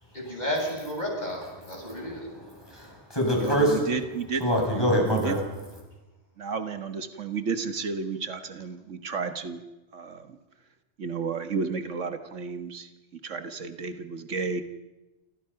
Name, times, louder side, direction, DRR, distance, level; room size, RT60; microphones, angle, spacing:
voice 1, 0.1-2.2, equal, 35° left, 0 dB, 7.6 m, -32 dB
voice 2, 1.7-3.9 4.4-5.4, equal, 20° left, 0 dB, 8.0 m, -26 dB
voice 3, 3.4-4.4 5.1-5.4 6.4-9.6 9.9-10.4 11.0-14.6, right 5 dB, 85° right, 8 dB, 1.8 m, -32 dB
29.0 x 26.5 x 5.9 m, 1.0 s
omnidirectional pair, 1.2 m